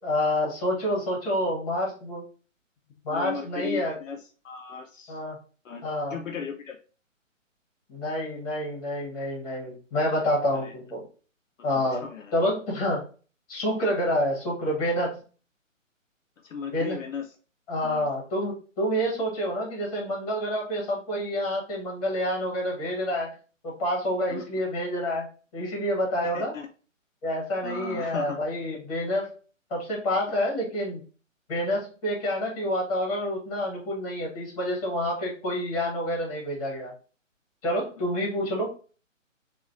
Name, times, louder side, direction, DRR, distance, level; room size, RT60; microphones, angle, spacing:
voice 1, 0.0-2.3 3.0-3.9 5.1-5.4 5.8-6.2 7.9-11.1 11.6-12.0 12.3-13.0 13.5-15.2 16.7-17.0 17.7-23.3 23.6-26.5 27.2-29.3 29.7-31.0 31.5-36.9 37.6-38.7, equal, 25° left, -1 dB, 1.2 m, -28 dB
voice 2, 3.1-5.2 5.6-5.8 6.1-6.8 10.5-10.7 11.7-12.3 16.4-17.3 17.8-18.1 24.3-24.4 26.2-26.7 27.6-28.4, left 6 dB, 75° left, 4 dB, 0.6 m, -36 dB
3.0 x 2.4 x 2.5 m, 0.37 s
figure-of-eight pair, 145°, 39 cm